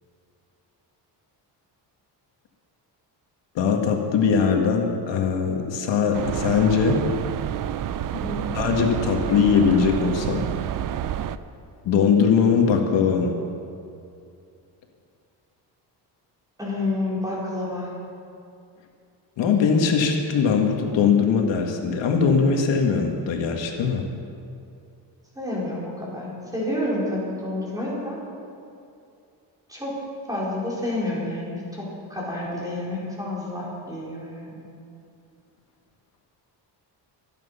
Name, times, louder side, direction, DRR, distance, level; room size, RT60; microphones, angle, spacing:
voice 1, 3.6-7.0 8.5-10.4 11.9-13.3 19.4-24.0, left 6 dB, 85° left, 2 dB, 1.9 m, -21 dB
sound 1, 6.1-11.4, right 11 dB, 50° right, 0.5 m, -29 dB
voice 2, 8.1-8.5 16.6-17.9 25.3-28.2 29.7-29.9 30.3-34.5, left 1 dB, 10° right, -6 dB, 4.4 m, -29 dB
25.0 x 9.4 x 5.7 m, 2.5 s
cardioid pair, 170°, 43 cm